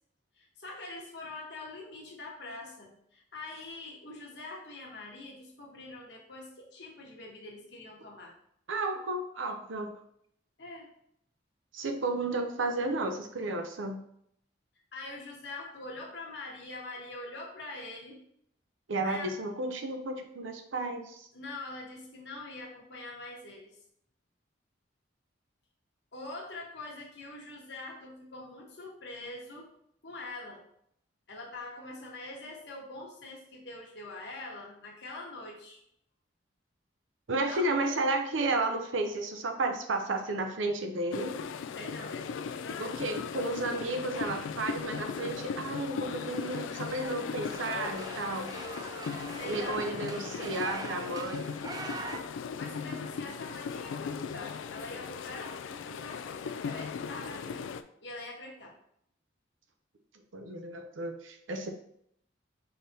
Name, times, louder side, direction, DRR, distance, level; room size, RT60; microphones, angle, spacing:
voice 1, 0.4-8.3 10.6-10.9 14.9-18.2 19.0-19.4 21.3-23.8 26.1-29.7 30.0-30.6 31.3-35.8 37.4-37.7 41.7-43.0 49.3-50.5 52.6-57.6 58.0-58.7, left 2 dB, 65° left, -1 dB, 1.2 m, -44 dB
voice 2, 8.7-9.9 11.7-14.0 18.9-21.3 37.3-41.3 42.8-48.6 49.5-51.5 60.3-61.7, right 2 dB, 85° right, 5 dB, 0.6 m, -32 dB
sound 1, 41.1-57.8, left 6 dB, 85° left, 0.3 m, -38 dB
sound 2, 45.7-52.2, right 2 dB, 20° right, 0.3 m, -43 dB
5.6 x 3.4 x 2.7 m, 0.71 s
head